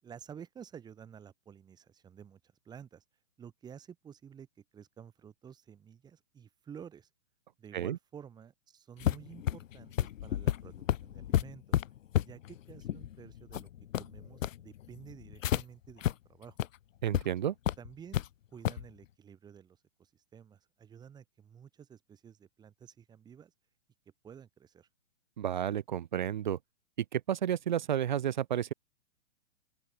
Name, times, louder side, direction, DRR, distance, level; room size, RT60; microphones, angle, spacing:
voice 1, 0.0-2.4 2.6-3.0 3.4-4.5 4.7-7.1 7.6-11.8 12.2-13.7 14.0-16.6 17.8-18.2 18.5-23.5 24.2-24.9, right 8 dB, 10° right, 6.7 m, -51 dB
sound 1, 9.0-15.6 16.0-16.1 16.5-16.7 17.1-17.2 17.7-18.3 18.6-18.9, left 11 dB, 85° left, 0.8 m, -32 dB
voice 2, 17.0-17.5 25.4-26.6 27.1-28.7, right 10 dB, 40° right, 0.5 m, -31 dB
open air
hypercardioid pair, 170°, 38 cm